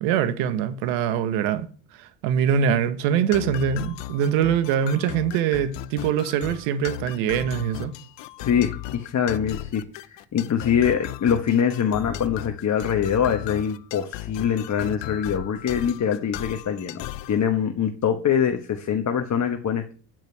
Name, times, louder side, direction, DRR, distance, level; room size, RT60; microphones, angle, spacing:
voice 1, 0.0-1.7 2.0-7.9, right 8 dB, 85° right, 1.3 m, -23 dB
sound 1, 3.3-17.4, left 14 dB, 70° left, 0.8 m, -36 dB
voice 2, 8.4-19.9, left 8 dB, 40° left, 1.2 m, -24 dB
9.1 x 5.2 x 7.9 m
supercardioid pair, 80°, 45 cm